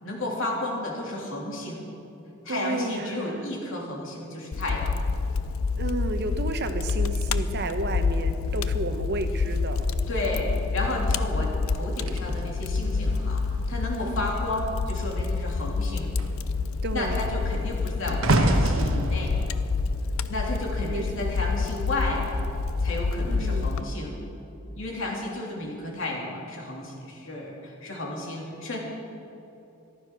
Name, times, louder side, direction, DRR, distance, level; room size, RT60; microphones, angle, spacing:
voice 1, 0.0-1.8 2.4-4.9 10.1-16.1 16.9-19.3 20.2-22.4 22.8-24.2 24.7-28.8, left 1 dB, 70° left, -2 dB, 3.2 m, -32 dB
voice 2, 2.5-3.5 5.8-9.9 14.0-14.3 16.8-17.2 20.8-21.4 23.3-23.7, right 2 dB, 55° right, 8 dB, 1.0 m, -32 dB
Fire, 4.5-23.8, left 4 dB, 85° left, 0.6 m, -28 dB
sound 1, 12.0-14.7 15.0-15.4 15.7-21.0 21.8-22.0, right 1 dB, 85° right, 1.1 m, -29 dB
14.5 x 12.5 x 6.2 m, 2.9 s
head